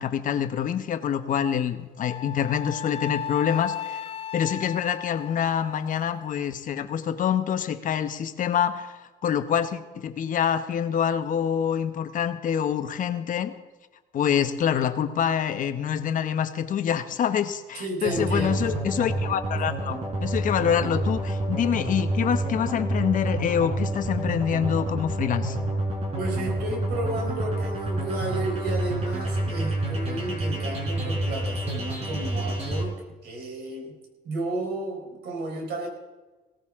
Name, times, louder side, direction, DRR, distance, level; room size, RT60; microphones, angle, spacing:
voice 1, 0.0-4.0 4.3-13.5 14.1-25.6, left 8 dB, 50° left, 9 dB, 1.1 m, -26 dB
Wind instrument woodwind instrument, 2.0-6.4, left 8 dB, 35° left, 0.5 m, -36 dB
voice 2, 17.7-18.7 26.2-34.0 34.2-35.9, right 2 dB, 75° right, 2 dB, 4.3 m, -32 dB
sound 1, 18.1-32.8, right 1 dB, 40° right, 4.4 m, -28 dB
17.5 x 15.0 x 3.7 m, 1.3 s
cardioid pair, 110°, 17 cm